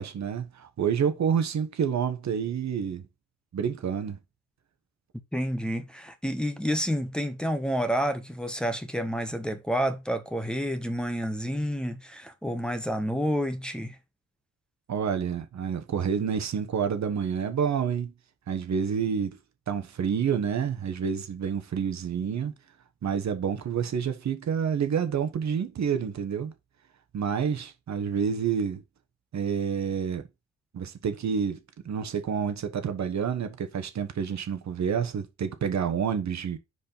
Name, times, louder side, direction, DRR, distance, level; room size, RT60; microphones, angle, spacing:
voice 1, 0.0-3.0 3.5-4.2 14.9-18.1 18.5-19.4 19.7-22.5 23.0-26.5 27.1-28.8 29.3-30.3 30.7-31.6 31.8-36.6, right 7 dB, 60° right, 1.3 m, -28 dB
voice 2, 5.3-14.0, equal, 5° left, 1.3 m, -29 dB
4.9 x 4.5 x 5.5 m
cardioid pair, 70°, 31 cm